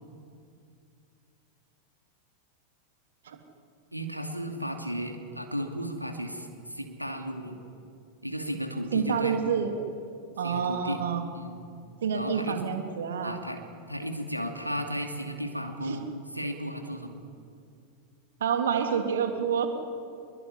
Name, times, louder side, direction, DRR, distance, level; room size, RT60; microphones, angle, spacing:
voice 1, 3.9-7.5 8.2-9.4 10.4-11.0 11.3-11.6 12.1-12.6 13.2-13.6 13.9-16.1 16.3-17.2, equal, 90° right, 3 dB, 2.7 m, -34 dB
voice 2, 8.9-9.8 10.4-11.2 12.0-13.4 15.8-16.0 18.4-19.7, right 7 dB, 60° right, 5 dB, 3.1 m, -28 dB
26.5 x 22.0 x 9.9 m, 2.4 s
figure-of-eight pair, 90°, 0 cm